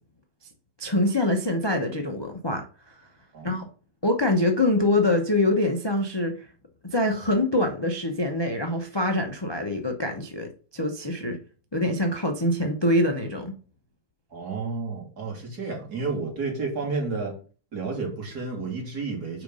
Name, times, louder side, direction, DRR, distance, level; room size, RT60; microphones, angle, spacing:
voice 1, 0.8-3.0 3.4-3.7 4.0-6.3 6.9-11.4 11.7-13.6, left 1 dB, 30° left, 0.4 m, -24 dB
voice 2, 14.3-17.3 17.7-19.4, right 4 dB, 55° right, 3.0 m, -31 dB
5.9 x 5.1 x 5.4 m
omnidirectional pair, 2.1 m